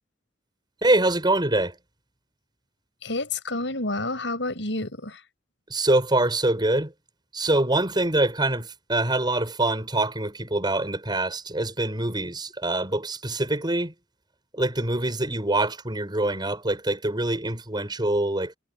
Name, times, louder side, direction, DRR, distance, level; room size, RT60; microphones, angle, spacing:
voice 1, 0.8-1.8 5.7-6.9 7.3-13.9 14.5-18.6, right 2 dB, 25° right, 6.8 m, -24 dB
voice 2, 3.0-5.2, left 2 dB, 75° left, 6.8 m, -29 dB
head